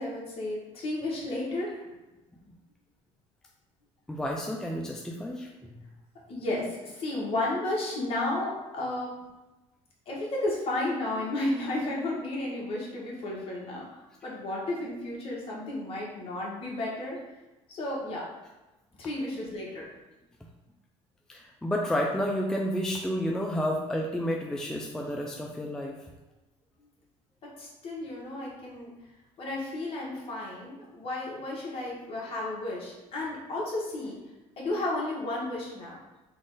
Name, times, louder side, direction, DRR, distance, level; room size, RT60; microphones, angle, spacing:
voice 1, 0.0-1.8 6.3-9.1 10.1-13.8 14.2-17.2 17.7-18.3 19.0-19.8 27.4-28.9 29.4-34.1 34.6-36.0, left 2 dB, 45° left, -4 dB, 1.4 m, -33 dB
voice 2, 4.1-5.5 21.3-26.0, equal, 5° left, -1 dB, 0.4 m, -30 dB
3.8 x 2.4 x 3.8 m, 1.1 s
cardioid pair, 120°, 13 cm